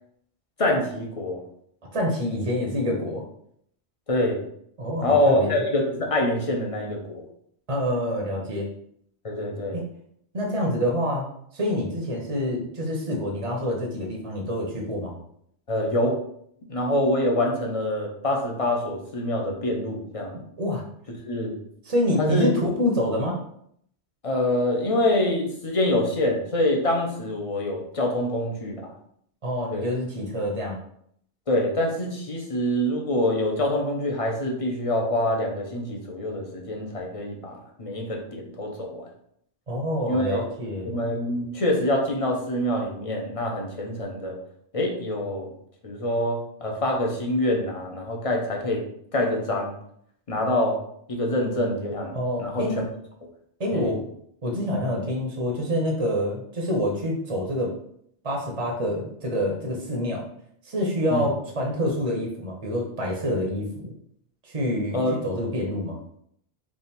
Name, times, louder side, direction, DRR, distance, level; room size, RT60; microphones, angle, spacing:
voice 1, 0.6-1.4 4.1-4.4 5.0-7.2 9.2-9.8 15.7-16.2 16.7-20.3 21.3-21.6 22.2-22.5 24.2-28.9 29.7-29.9 31.5-39.1 40.0-40.4 40.8-44.4 44.7-45.5 45.8-48.8 49.1-49.7 50.3-50.8 51.1-52.8 53.7-53.9 61.1-61.3 64.9-65.2, left 1 dB, 35° left, 0 dB, 0.7 m, -25 dB
voice 2, 1.9-3.2 4.8-5.6 7.7-8.7 9.7-9.8 10.3-11.3 11.5-15.2 20.6-20.8 21.8-23.4 29.4-30.8 39.7-40.9 52.1-52.8 53.6-54.1 54.4-57.7 58.2-60.2 60.6-63.9 64.4-66.0, equal, 35° right, -1 dB, 0.7 m, -27 dB
3.5 x 2.5 x 4.1 m, 0.68 s
omnidirectional pair, 1.1 m